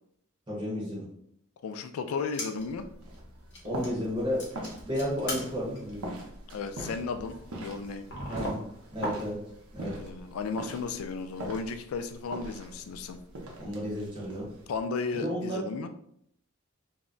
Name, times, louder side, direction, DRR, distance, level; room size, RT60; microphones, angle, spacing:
voice 1, 0.5-1.1 3.6-6.1 8.3-8.6 8.9-9.4 9.7-10.0 13.6-14.5 15.1-15.6, equal, 25° right, -6 dB, 0.8 m, -32 dB
voice 2, 1.6-2.9 6.5-8.1 9.9-13.2 14.7-15.9, left 4 dB, 85° left, 8 dB, 0.3 m, -34 dB
sound 1, 2.2-2.8 3.1-3.2 3.5-4.1 4.4-9.7 10.0-10.7 10.9-11.0 11.6-13.8 14.2-14.3, left 1 dB, 55° left, 0.8 m, -41 dB
sound 2, 2.6-14.8, right 1 dB, 85° right, 0.6 m, -43 dB
2.2 x 2.1 x 3.7 m, 0.70 s
head